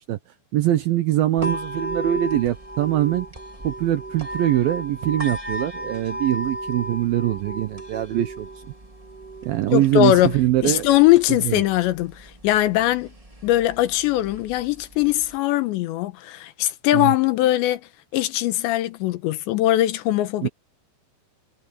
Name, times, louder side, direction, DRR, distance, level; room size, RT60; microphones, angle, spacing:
voice 1, 0.5-3.3 3.6-8.5 9.4-10.9 11.4-11.6 16.9-17.1 20.4-20.5, right 13 dB, 75° right, 2.3 m, -22 dB
sound 1, 1.4-15.4, right 1 dB, 15° right, 1.1 m, -35 dB
voice 2, 9.7-10.4 10.6-13.1 13.4-17.8 18.1-20.5, left 15 dB, 85° left, 3.3 m, -20 dB
omnidirectional pair, 5.1 m